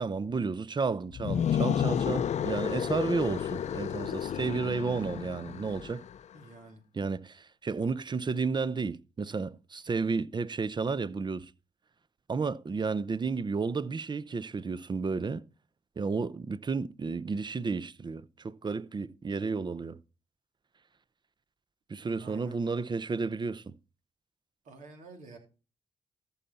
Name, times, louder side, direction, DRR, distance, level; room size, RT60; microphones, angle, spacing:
voice 1, 0.0-6.0 6.9-11.5 12.3-15.4 16.0-20.0 21.9-23.7, right 4 dB, 40° right, 0.7 m, -32 dB
sound 1, 1.1-6.2, left 9 dB, 70° left, 0.6 m, -31 dB
voice 2, 6.3-6.8 22.0-22.6 24.6-25.4, right 4 dB, 85° right, 3.1 m, -49 dB
14.0 x 5.6 x 4.1 m
supercardioid pair, 55°, 12 cm